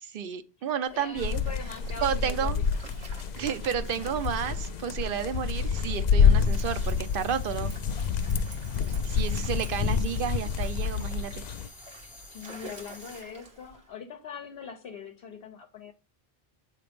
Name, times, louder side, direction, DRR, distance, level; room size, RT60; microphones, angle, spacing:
voice 1, 0.0-1.4 2.0-2.6 3.4-7.7 9.0-11.4, right 8 dB, 60° right, 0.8 m, -31 dB
voice 2, 0.6-2.7 8.7-9.1 12.3-15.9, left 6 dB, 70° left, 0.9 m, -42 dB
Stream, 0.8-13.9, right 2 dB, 85° right, 1.6 m, -50 dB
sound 1, 1.2-11.7, left 6 dB, 55° left, 0.5 m, -27 dB
sound 2, 6.4-13.2, left 2 dB, 25° left, 0.8 m, -50 dB
7.8 x 3.3 x 5.0 m
omnidirectional pair, 1.1 m